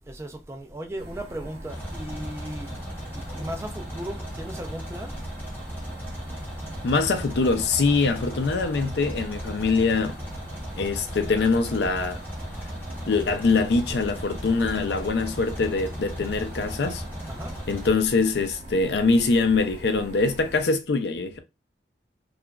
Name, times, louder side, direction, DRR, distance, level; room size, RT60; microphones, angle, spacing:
voice 1, 0.1-2.7 3.1-5.2 17.3-17.5, right 1 dB, 15° right, 0.4 m, -36 dB
sound 1, 1.0-20.6, right 1 dB, 65° right, 0.9 m, -42 dB
sound 2, 1.7-17.9, equal, 10° left, 0.7 m, -37 dB
voice 2, 6.8-10.2 10.7-12.2 13.1-17.0 17.7-21.4, left 4 dB, 70° left, 0.4 m, -23 dB
3.0 x 2.3 x 2.2 m
head